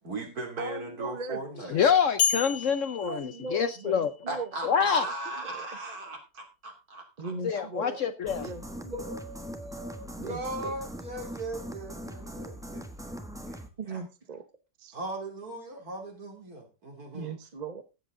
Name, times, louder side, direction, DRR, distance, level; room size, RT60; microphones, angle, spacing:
voice 1, 0.0-1.8 4.3-7.3 8.9-12.9 13.4-13.6 13.9-14.0 14.9-17.4, right 2 dB, 60° right, 3.3 m, -38 dB
voice 2, 0.6-1.9 3.0-4.5 5.0-5.7 7.2-9.0 10.2-10.7 13.8-14.4 14.8-15.0 17.1-17.8, right 4 dB, 35° right, 0.8 m, -39 dB
voice 3, 1.7-4.1 4.6-5.0 7.4-8.5, left 7 dB, 60° left, 0.9 m, -26 dB
sound 1, 2.2-4.3, left 7 dB, 85° left, 3.1 m, -31 dB
sound 2, 8.3-13.7, equal, ahead, 1.0 m, -41 dB
14.5 x 7.9 x 3.7 m
omnidirectional pair, 1.8 m